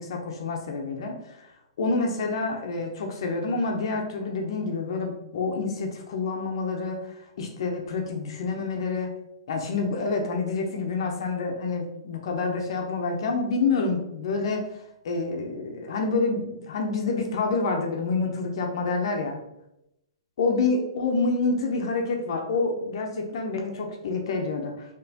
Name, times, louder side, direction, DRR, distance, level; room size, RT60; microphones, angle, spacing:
voice 1, 0.0-1.5 1.8-9.1 9.5-19.4 20.4-24.9, left 3 dB, 55° left, 2 dB, 0.7 m, -28 dB
4.0 x 3.0 x 2.9 m, 0.84 s
hypercardioid pair, 165°, 3 cm